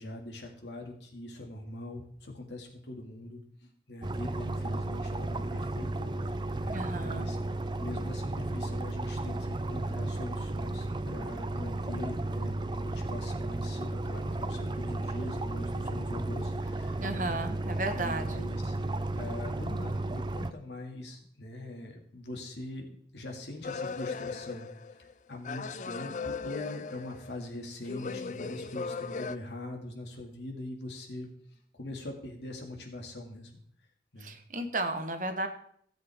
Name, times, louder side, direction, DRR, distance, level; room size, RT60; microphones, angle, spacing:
voice 1, 0.0-7.4 7.8-17.4 17.9-18.8 19.1-24.7 25.3-31.3 31.8-33.5 34.1-34.3, left 1 dB, 80° left, 1 dB, 2.1 m, -42 dB
sound 1, 4.0-20.5, right 2 dB, 25° right, 0.4 m, -34 dB
voice 2, 6.7-7.3 17.0-18.4 34.2-35.5, right 2 dB, 45° right, 7 dB, 1.1 m, -34 dB
sound 2, 23.6-25.1 25.4-27.5 27.8-29.4, left 4 dB, 45° left, 0.4 m, -38 dB
16.5 x 7.8 x 3.5 m, 0.63 s
head